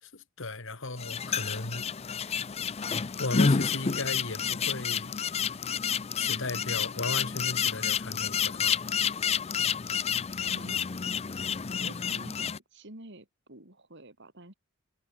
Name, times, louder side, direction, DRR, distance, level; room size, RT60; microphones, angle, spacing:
voice 1, 0.0-1.9 3.2-5.1 6.2-8.8, left 2 dB, 60° left, 2.6 m, -36 dB
sound 1, 1.0-12.6, left 6 dB, 30° left, 0.5 m, -30 dB
voice 2, 10.3-10.8 11.7-14.5, right 1 dB, 55° right, 3.6 m, -49 dB
head